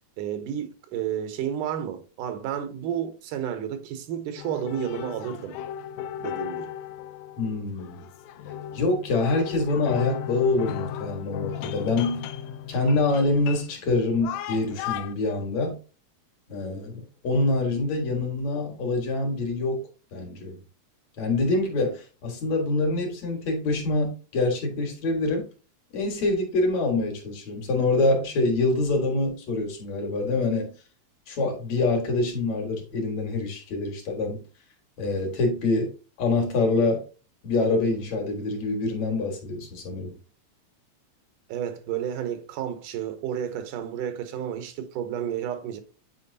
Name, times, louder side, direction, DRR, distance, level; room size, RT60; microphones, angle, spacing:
voice 1, 0.2-5.6 6.2-6.7 41.5-45.8, right 9 dB, 90° right, 2.5 m, -31 dB
sound 1, 4.4-15.1, left 10 dB, 80° left, 1.7 m, -35 dB
voice 2, 7.4-8.0 8.7-12.2 12.7-15.8 16.5-19.8 20.1-20.6 21.2-25.5 25.9-30.7 31.3-34.4 35.0-35.9 36.2-37.0 37.4-40.2, left 2 dB, 60° left, 2.8 m, -25 dB
9.0 x 4.7 x 2.7 m
omnidirectional pair, 3.6 m